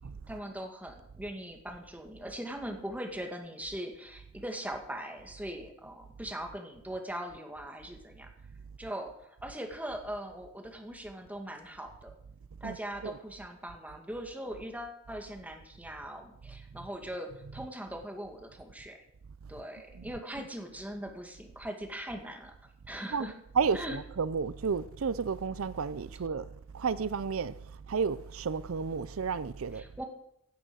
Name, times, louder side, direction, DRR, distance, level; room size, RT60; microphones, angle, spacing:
voice 1, 0.3-8.3 8.8-12.1 12.6-19.0 19.5-22.5 22.9-23.3 23.7-24.0 29.7-30.0, right 1 dB, 10° right, 2.1 m, -40 dB
voice 2, 23.6-26.4 26.7-27.5 27.9-29.8, right 5 dB, 85° right, 0.5 m, -31 dB
16.5 x 8.9 x 6.4 m
head